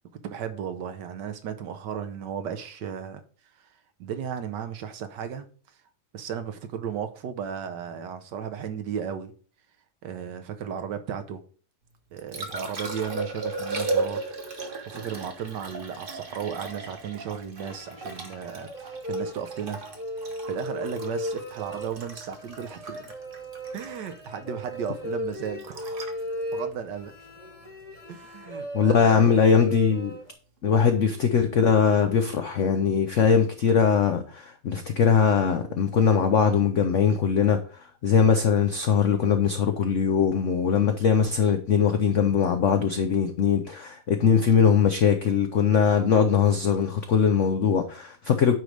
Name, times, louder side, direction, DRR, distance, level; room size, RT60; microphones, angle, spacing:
voice 1, 0.2-3.2 3.6-3.7 4.0-5.5 6.1-9.3 10.0-11.4 12.1-14.2 14.5-19.8 20.2-23.1 23.7-26.1 26.5-27.1 28.1-29.2, right 8 dB, 70° right, 1.3 m, -35 dB
Liquid, 11.9-28.0 30.8-30.9, right 3 dB, 35° right, 1.1 m, -36 dB
sound 1, 17.6-30.3, equal, 20° left, 1.0 m, -36 dB
voice 2, 28.7-30.1 30.6-37.6 38.0-48.5, left 6 dB, 70° left, 0.7 m, -21 dB
9.2 x 3.2 x 4.9 m
omnidirectional pair, 2.1 m